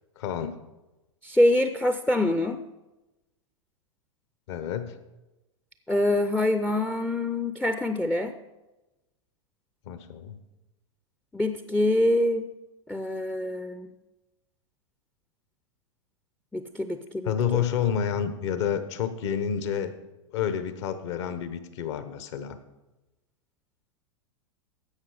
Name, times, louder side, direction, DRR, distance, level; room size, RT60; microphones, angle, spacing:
voice 1, 0.2-0.6 4.5-4.9 9.9-10.4 17.2-19.9 20.3-22.6, left 8 dB, 60° left, 11 dB, 1.1 m, -29 dB
voice 2, 1.2-2.6 5.9-8.3 11.3-12.5 12.9-13.9 16.5-17.3, left 1 dB, 5° left, 9 dB, 0.4 m, -25 dB
15.0 x 5.6 x 4.9 m, 1.0 s
hypercardioid pair, 105°, 17 cm